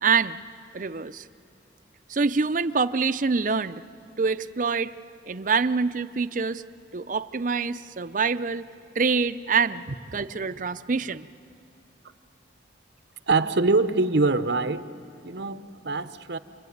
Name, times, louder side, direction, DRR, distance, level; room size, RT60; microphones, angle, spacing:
voice 1, 0.0-0.4 0.7-1.2 2.1-3.8 4.2-4.9 5.3-6.6 6.9-8.7 9.0-9.8 10.1-11.3, right 5 dB, 40° right, 11 dB, 0.5 m, -25 dB
voice 2, 13.3-14.9 15.2-16.4, right 3 dB, 60° right, 11 dB, 0.9 m, -24 dB
28.0 x 22.5 x 9.4 m, 2.7 s
head